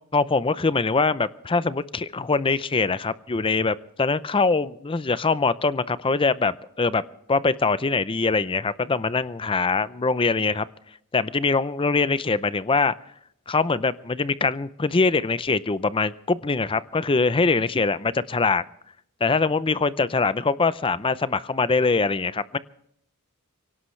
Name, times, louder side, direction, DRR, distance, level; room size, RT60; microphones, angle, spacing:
voice 1, 0.1-7.0 7.3-10.7 11.1-12.9 13.5-18.6 19.2-22.6, left 4 dB, 25° left, 16 dB, 0.6 m, -23 dB
24.5 x 17.5 x 3.2 m, 0.73 s
head